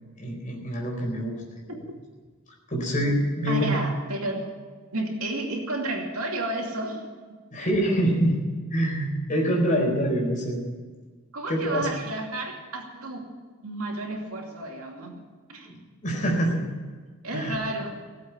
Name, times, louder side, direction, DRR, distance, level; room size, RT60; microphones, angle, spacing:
voice 1, 0.2-1.4 1.7-1.8 2.7-3.8 7.5-8.4 8.7-10.6 11.5-11.9 15.7-16.6 17.3-17.6, equal, 35° left, 0 dB, 4.3 m, -25 dB
voice 2, 3.5-4.4 4.9-7.1 11.3-13.3 13.6-15.2 15.5-15.7 17.2-18.0, right 2 dB, 85° right, 1 dB, 2.6 m, -31 dB
18.0 x 7.8 x 9.6 m, 1.5 s
head